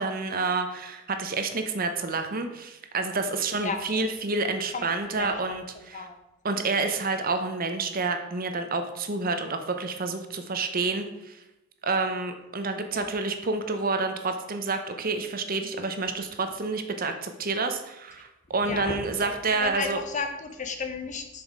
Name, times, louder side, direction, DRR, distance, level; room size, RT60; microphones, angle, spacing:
voice 1, 0.0-6.1 6.4-11.3 11.8-20.0, right 3 dB, 45° right, 7 dB, 0.8 m, -29 dB
voice 2, 3.6-4.0 4.7-4.8 5.1-5.6 5.9-6.2 12.9-13.1 18.6-21.4, left 4 dB, 35° left, 6 dB, 1.0 m, -34 dB
7.2 x 6.2 x 4.6 m, 0.97 s
head